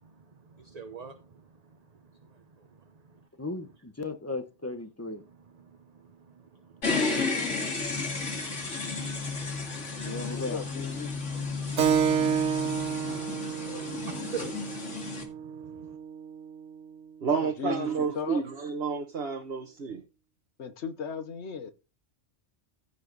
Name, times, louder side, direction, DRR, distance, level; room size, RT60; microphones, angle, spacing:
voice 1, 0.0-3.2 5.6-8.3 9.1-10.0 11.1-16.0, right 7 dB, 35° right, 1.0 m, -48 dB
voice 2, 3.4-5.2 10.0-10.6, left 2 dB, 15° left, 1.1 m, -36 dB
sound 1, 6.8-15.2, left 4 dB, 90° left, 2.6 m, -33 dB
voice 3, 10.3-11.1 17.4-18.4 20.6-21.7, left 7 dB, 70° left, 1.4 m, -36 dB
Keyboard (musical), 11.8-16.9, right 8 dB, 85° right, 1.3 m, -30 dB
voice 4, 17.2-20.0, right 6 dB, 60° right, 1.3 m, -30 dB
15.5 x 5.6 x 4.0 m
omnidirectional pair, 1.2 m